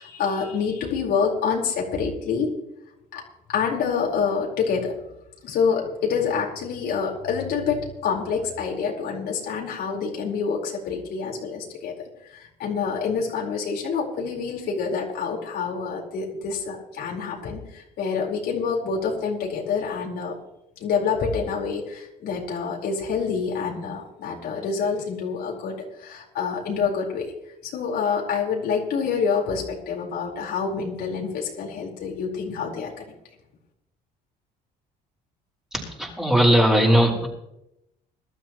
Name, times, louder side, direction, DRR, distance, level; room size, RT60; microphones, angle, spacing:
voice 1, 0.0-2.5 3.1-3.2 3.5-4.9 5.4-11.9 12.2-20.3 20.8-27.3 27.6-32.9, left 5 dB, 70° left, -1 dB, 4.6 m, -27 dB
voice 2, 35.7-37.3, equal, 5° right, -2 dB, 4.9 m, -19 dB
22.0 x 12.5 x 3.1 m, 0.85 s
cardioid pair, 110°, 17 cm